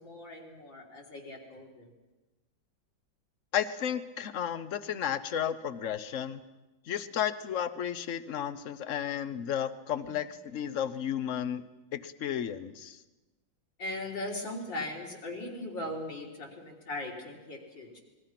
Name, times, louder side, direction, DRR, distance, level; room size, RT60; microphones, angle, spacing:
voice 1, 0.0-1.9 13.8-18.0, left 1 dB, 70° left, -1 dB, 4.7 m, -39 dB
voice 2, 3.5-6.4 6.9-11.6 11.9-13.0, left 9 dB, 50° left, 13 dB, 1.0 m, -33 dB
27.5 x 21.5 x 6.0 m, 1.1 s
omnidirectional pair, 2.1 m